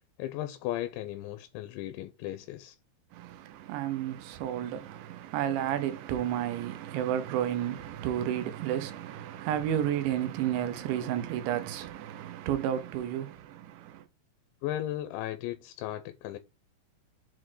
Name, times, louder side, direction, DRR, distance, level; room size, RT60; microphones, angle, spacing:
voice 1, 0.2-2.8 14.6-16.4, left 13 dB, 85° left, 2.9 m, -36 dB
voice 2, 3.1-14.0, right 11 dB, 80° right, 3.1 m, -32 dB
7.2 x 4.4 x 4.5 m
omnidirectional pair, 5.4 m